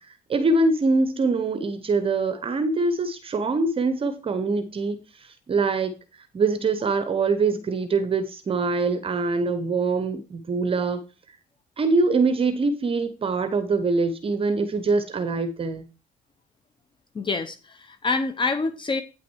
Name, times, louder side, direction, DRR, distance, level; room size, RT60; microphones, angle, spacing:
voice 1, 0.1-11.0 11.8-15.9, right 3 dB, 35° right, 0.9 m, -24 dB
voice 2, 17.1-19.0, left 4 dB, 30° left, 0.8 m, -26 dB
8.9 x 5.9 x 4.6 m
cardioid pair, 110°, 17 cm